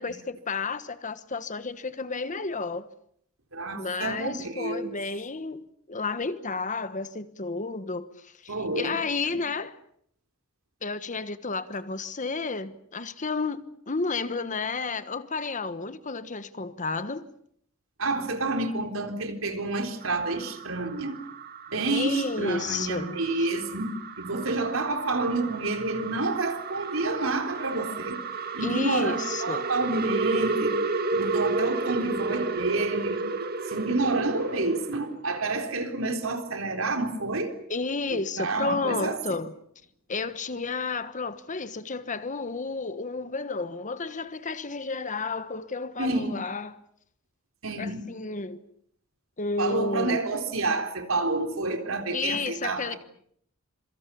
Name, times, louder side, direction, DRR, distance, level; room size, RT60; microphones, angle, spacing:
voice 1, 0.0-2.9 3.7-9.8 10.8-17.3 21.9-23.5 28.6-29.6 37.7-39.5 40.1-46.7 47.8-48.6 49.4-50.2 52.1-52.9, left 4 dB, 40° left, 1.3 m, -32 dB
voice 2, 3.5-5.0 8.5-9.0 9.3-9.4 18.0-21.2 21.7-28.2 28.5-30.8 31.1-33.2 33.7-37.5 38.1-39.2 46.0-46.4 47.6-48.0 49.6-53.0, right 2 dB, 80° right, 3.9 m, -29 dB
sound 1, 20.0-35.1, right 3 dB, 50° right, 1.8 m, -32 dB
26.5 x 24.0 x 7.1 m
head